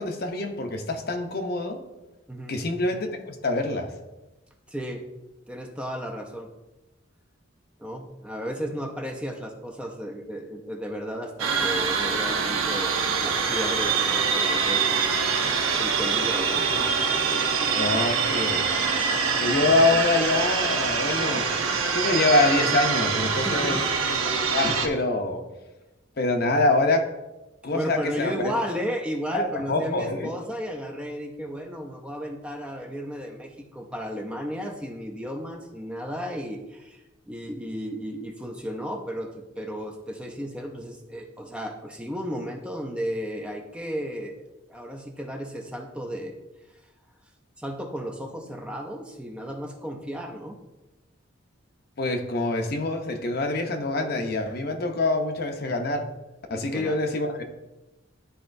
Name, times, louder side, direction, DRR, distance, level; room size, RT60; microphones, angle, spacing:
voice 1, 0.0-1.8 2.5-3.9 16.6-16.8 17.7-18.8 19.4-21.5 21.9-23.8 24.1-24.2 24.5-25.4 26.2-27.1 27.6-28.5 29.3-30.3 52.0-56.1 56.5-57.4, left 2 dB, 50° left, 5 dB, 0.7 m, -25 dB
voice 2, 4.7-5.0 5.5-6.5 7.8-15.0 15.8-16.7 23.4-23.9 27.7-46.3 47.6-50.6 56.5-57.0, equal, 5° right, 2 dB, 0.5 m, -34 dB
sound 1, 11.4-24.9, right 5 dB, 90° right, 0.8 m, -24 dB
11.5 x 4.2 x 2.6 m, 1.0 s
head